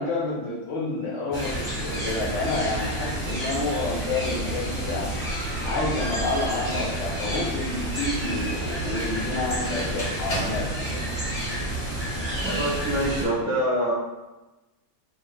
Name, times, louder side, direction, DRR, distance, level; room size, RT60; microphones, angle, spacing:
voice 1, 0.0-5.2 5.6-11.0, left 2 dB, 85° left, -5 dB, 1.2 m, -29 dB
sound 1, 1.3-13.3, right 1 dB, 5° left, 1.3 m, -30 dB
sound 2, 4.4-11.1, equal, 65° left, 1.5 m, -37 dB
voice 2, 12.4-13.9, right 1 dB, 15° right, -9 dB, 1.0 m, -25 dB
3.7 x 2.5 x 2.3 m, 1.1 s
omnidirectional pair, 1.2 m